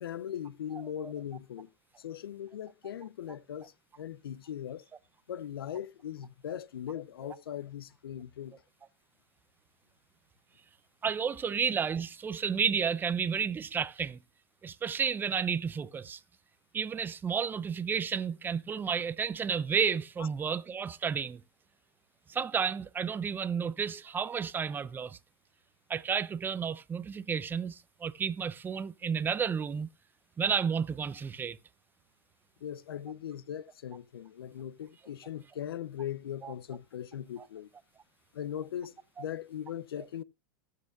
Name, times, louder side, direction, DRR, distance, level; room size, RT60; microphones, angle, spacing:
voice 1, 0.0-1.7 2.0-4.8 5.3-8.6 20.2-20.3 32.6-37.7 38.3-40.2, left 10 dB, 90° left, 0.6 m, -39 dB
voice 2, 11.0-14.2 14.6-16.2 16.7-21.4 22.3-25.2 25.9-29.9 30.4-31.6 36.4-36.5, right 6 dB, 15° right, 0.5 m, -31 dB
19.0 x 6.6 x 2.3 m
hypercardioid pair, 120°, 12 cm